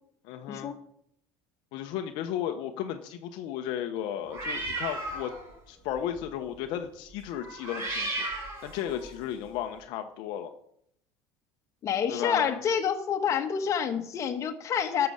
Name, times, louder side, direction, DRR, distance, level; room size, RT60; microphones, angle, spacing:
voice 1, 0.2-0.7 1.7-5.3 5.7-8.3 8.6-10.5 12.1-12.5, left 10 dB, 65° left, 6 dB, 1.0 m, -34 dB
sound 1, 4.3-5.5 5.9-6.2 7.4-9.2, right 2 dB, 35° right, 5.8 m, -35 dB
voice 2, 11.8-15.1, left 7 dB, 40° left, 5 dB, 1.5 m, -28 dB
12.5 x 6.9 x 6.5 m, 0.71 s
cardioid pair, 130°, 8 cm